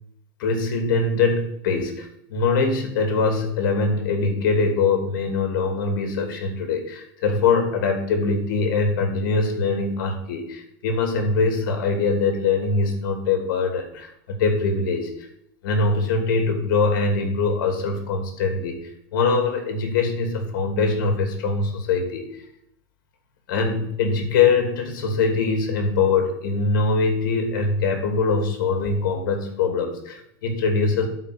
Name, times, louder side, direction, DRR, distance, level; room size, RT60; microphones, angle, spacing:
voice 1, 0.4-15.1 15.6-18.8 19.1-22.3 23.5-31.1, left 4 dB, 75° left, 5 dB, 2.7 m, -22 dB
12.0 x 4.8 x 6.6 m, 0.74 s
supercardioid pair, 135°, 11 cm